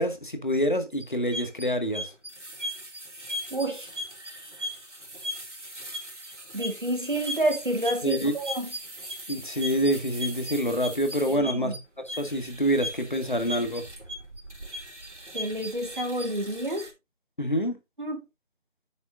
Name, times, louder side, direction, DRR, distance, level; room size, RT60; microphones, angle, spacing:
voice 1, 0.0-2.1 8.0-8.3 9.3-13.8 17.4-17.8, equal, 40° left, 1.8 m, -27 dB
sound 1, 1.0-16.9, equal, 65° right, 2.6 m, -38 dB
voice 2, 3.5-3.9 6.5-8.7 11.3-11.7 15.3-16.9 18.0-18.2, right 1 dB, 40° right, 1.8 m, -29 dB
9.5 x 7.9 x 2.6 m
figure-of-eight pair, 170°, 39 cm